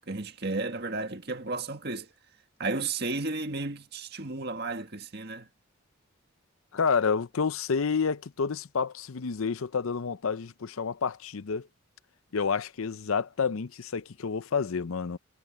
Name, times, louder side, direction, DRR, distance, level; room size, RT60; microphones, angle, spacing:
voice 1, 0.1-2.1 2.6-5.5, right 3 dB, 50° right, 1.9 m, -33 dB
voice 2, 6.7-11.7 12.3-15.2, left 5 dB, 80° left, 0.6 m, -29 dB
head